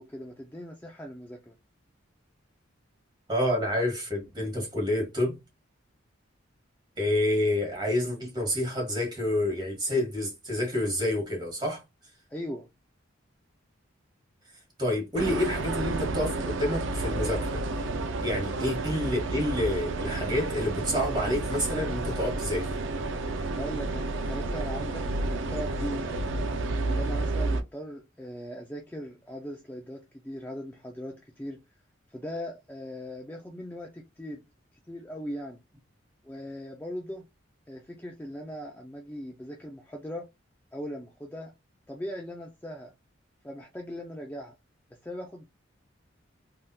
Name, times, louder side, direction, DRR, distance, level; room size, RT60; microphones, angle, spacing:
voice 1, 0.0-1.5 12.3-12.7 23.5-26.3 26.8-31.6 32.1-34.4 34.9-35.6 36.2-37.2 37.7-40.3 40.7-41.5 41.9-42.9 43.4-44.5 45.0-45.5, equal, 10° left, 0.4 m, -39 dB
voice 2, 3.3-5.3 7.0-11.8 14.8-17.6 18.2-22.8, left 1 dB, 20° right, 1.5 m, -28 dB
sound 1, 15.2-27.6, right 2 dB, 70° right, 0.4 m, -31 dB
3.4 x 2.7 x 2.2 m
head